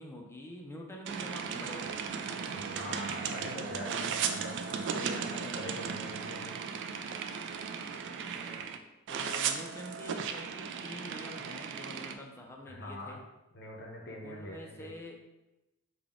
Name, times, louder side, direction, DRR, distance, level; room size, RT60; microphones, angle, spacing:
voice 1, 0.0-2.6 8.0-8.8 9.1-13.2 14.2-15.2, equal, 10° left, 0 dB, 0.5 m, -47 dB
sound 1, 1.1-8.8 9.1-12.2, right 6 dB, 55° right, 0.3 m, -36 dB
voice 2, 2.5-6.6 12.7-13.2 13.5-14.9, left 1 dB, 55° left, -1 dB, 0.7 m, -43 dB
3.8 x 2.3 x 3.5 m, 0.97 s
head